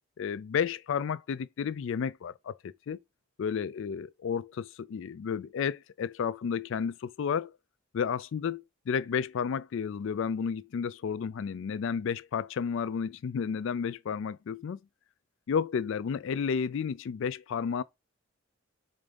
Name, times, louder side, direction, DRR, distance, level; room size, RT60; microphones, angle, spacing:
voice 1, 0.2-3.0 3.4-7.5 7.9-8.6 8.9-14.8 15.5-17.8, left 6 dB, 65° left, 0.3 m, -32 dB
6.9 x 2.6 x 5.1 m
head